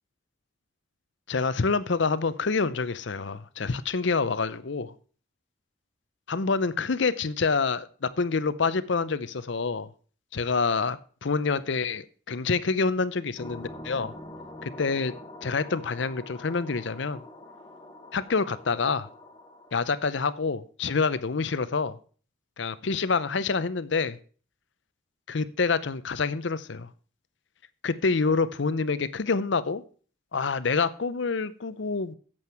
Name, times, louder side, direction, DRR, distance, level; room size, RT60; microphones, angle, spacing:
voice 1, 1.3-4.9 6.3-9.9 10.3-14.1 14.6-15.1 15.4-17.2 18.1-19.1 19.7-22.0 22.6-24.2 25.3-26.9 27.8-29.8 30.3-32.1, left 4 dB, 65° left, 0.6 m, -27 dB
sound 1, 13.4-20.0, left 1 dB, 20° left, 1.0 m, -45 dB
8.9 x 7.9 x 5.8 m
head